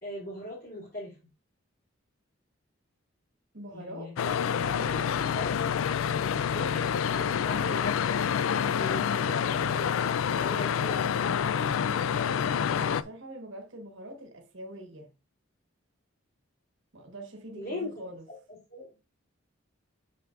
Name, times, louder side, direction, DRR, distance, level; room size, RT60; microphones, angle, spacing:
voice 1, 0.0-1.2 3.7-4.4 5.3-5.6 6.5-8.0 8.8-11.1 17.5-17.9 18.3-18.4 18.7-18.9, left 1 dB, 50° left, 3.1 m, -39 dB
voice 2, 3.5-4.2 4.6-5.3 12.7-15.1 16.9-18.2, right 1 dB, 70° right, 1.3 m, -44 dB
sound 1, 4.2-13.0, left 7 dB, 75° left, 0.3 m, -27 dB
7.8 x 6.5 x 2.5 m
head